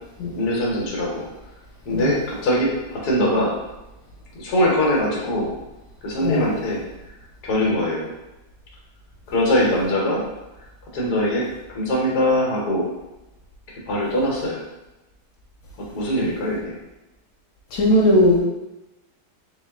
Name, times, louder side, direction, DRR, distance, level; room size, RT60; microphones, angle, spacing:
voice 1, 0.3-1.2 1.9-3.5 4.4-5.6 6.0-6.8 7.4-8.1 9.3-10.2 10.9-11.4 11.7-12.9 13.9-14.6 15.8-16.7, left 1 dB, 70° left, -3 dB, 1.5 m, -22 dB
voice 2, 6.2-6.5 17.7-18.4, left 1 dB, 90° left, -3 dB, 1.3 m, -18 dB
4.0 x 2.4 x 3.5 m, 1.0 s
omnidirectional pair, 1.8 m